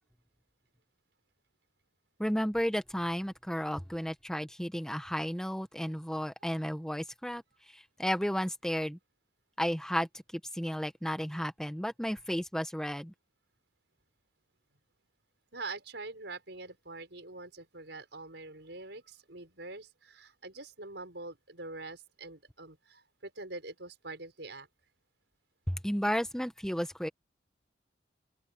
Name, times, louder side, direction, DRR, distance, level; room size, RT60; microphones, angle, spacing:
voice 1, 2.2-7.4 7.7-9.0 9.6-10.1 10.5-13.1 25.7-27.1, equal, 5° left, 1.4 m, -33 dB
voice 2, 15.5-24.7, right 3 dB, 70° right, 6.1 m, -44 dB
open air
head